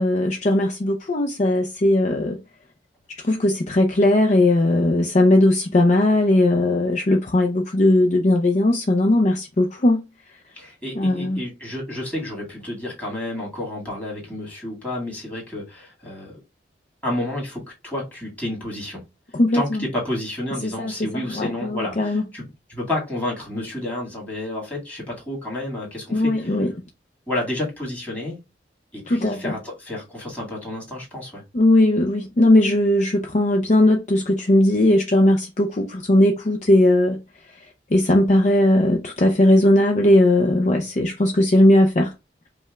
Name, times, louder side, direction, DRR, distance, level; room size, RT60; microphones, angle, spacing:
voice 1, 0.0-2.4 3.2-10.0 10.9-11.4 19.3-19.9 20.6-22.2 26.1-26.7 29.1-29.6 31.5-37.2 37.9-42.1, left 1 dB, 40° left, 0.6 m, -18 dB
voice 2, 10.5-16.4 17.0-19.0 19.5-26.6 27.3-28.4 28.9-31.4, left 1 dB, 10° left, 2.0 m, -30 dB
5.1 x 2.2 x 3.4 m
head